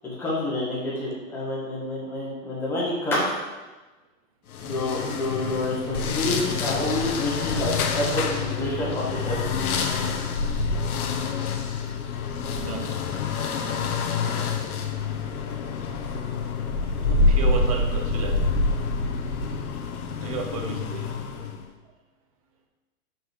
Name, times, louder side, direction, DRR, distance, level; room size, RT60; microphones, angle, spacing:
voice 1, 0.0-3.2 4.6-9.4, left 1 dB, 5° left, -7 dB, 1.1 m, -28 dB
sound 1, 4.5-21.7, left 4 dB, 85° left, 1.0 m, -27 dB
voice 2, 6.7-7.0 12.5-13.3 13.5-13.9 14.2-14.4 15.1-15.6 17.0-18.4 20.2-21.1, right 4 dB, 25° right, 3 dB, 0.6 m, -35 dB
5.9 x 5.6 x 4.7 m, 1.2 s
supercardioid pair, 175°, 42 cm